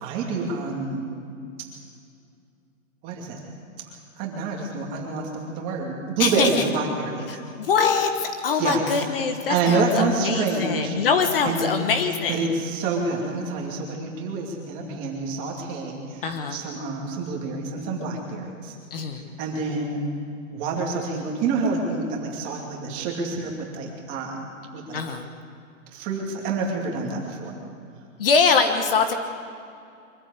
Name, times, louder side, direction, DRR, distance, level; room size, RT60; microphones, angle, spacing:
voice 1, 0.0-1.1 3.0-3.4 4.2-7.4 8.5-8.8 9.5-11.0 11.4-11.7 12.3-18.8 19.4-20.0 20.5-25.0 25.9-27.5, right 4 dB, 20° right, -1 dB, 2.6 m, -27 dB
voice 2, 6.2-6.6 7.3-12.5 16.2-16.6 18.9-19.2 24.9-25.3 28.2-29.1, left 5 dB, 40° left, 6 dB, 1.4 m, -23 dB
24.0 x 14.0 x 8.3 m, 2.4 s
hypercardioid pair, 170°, 42 cm